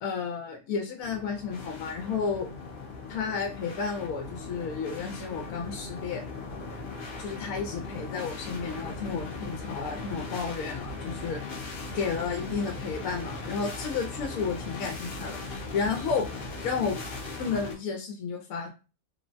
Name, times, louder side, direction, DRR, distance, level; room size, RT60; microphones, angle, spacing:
voice 1, 0.0-2.5 3.1-6.2 7.2-11.4 11.9-16.3 16.6-17.0 17.4-18.7, left 5 dB, 75° left, 3 dB, 0.9 m, -32 dB
sound 1, 1.0-17.7, left 3 dB, 50° left, 0.7 m, -38 dB
3.1 x 2.1 x 2.5 m, 0.32 s
omnidirectional pair, 1.5 m